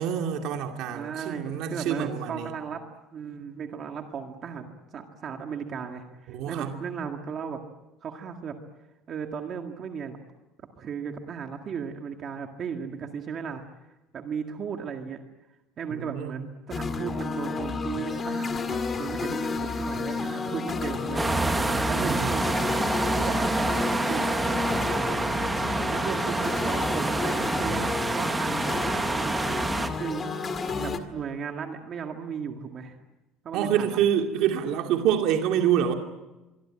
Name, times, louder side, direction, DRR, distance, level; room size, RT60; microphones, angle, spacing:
voice 1, 0.0-2.5 6.3-6.8 15.9-16.4 21.8-22.3 33.5-35.9, right 9 dB, 55° right, 4 dB, 2.5 m, -26 dB
voice 2, 0.9-2.8 3.1-7.6 8.0-8.6 9.1-10.2 10.8-13.6 14.1-15.2 15.8-21.2 21.9-22.6 23.2-25.2 25.9-28.6 28.8-29.4 29.9-30.3 30.8-33.0 33.4-34.0, right 6 dB, 30° right, 4 dB, 1.9 m, -36 dB
sound 1, 16.7-31.0, left 4 dB, 20° left, 1.9 m, -31 dB
sound 2, 21.1-29.9, right 2 dB, 10° right, 1.3 m, -27 dB
26.0 x 24.0 x 8.8 m, 1.1 s
cardioid pair, 175°, 0 cm